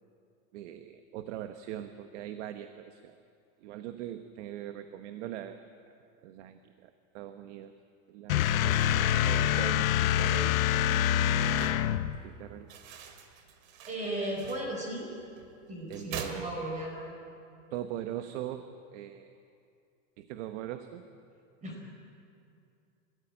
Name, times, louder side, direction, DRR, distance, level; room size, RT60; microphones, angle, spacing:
voice 1, 0.5-3.2 3.6-5.6 5.9-6.0 6.2-7.7 8.1-10.6 11.5-12.7 15.9-16.8 17.7-19.3 20.2-21.0, right 11 dB, 60° right, 8 dB, 1.2 m, -41 dB
sound 1, 8.3-12.2, left 10 dB, 80° left, 1.0 m, -26 dB
sound 2, 8.5-17.1, right 7 dB, 80° right, 2.6 m, -47 dB
voice 2, 13.9-15.2 15.7-17.1 21.6-21.7, right 1 dB, 20° right, -1 dB, 4.6 m, -36 dB
28.0 x 14.5 x 8.8 m, 2.5 s
supercardioid pair, 155°, 40 cm